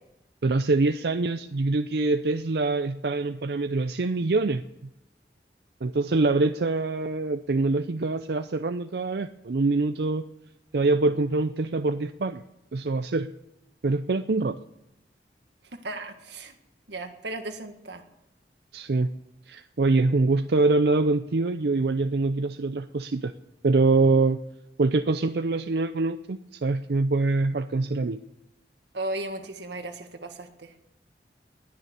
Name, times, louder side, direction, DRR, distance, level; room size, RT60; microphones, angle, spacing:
voice 1, 0.4-4.6 5.8-10.2 10.7-12.4 12.7-13.3 13.8-14.6 18.7-19.1 19.5-23.3 23.6-24.4 24.8-28.2, right 3 dB, 70° right, 10 dB, 0.5 m, -24 dB
voice 2, 15.8-16.5 16.9-18.0 28.9-30.7, right 2 dB, 85° right, 6 dB, 1.8 m, -35 dB
20.0 x 6.9 x 9.6 m, 0.90 s
head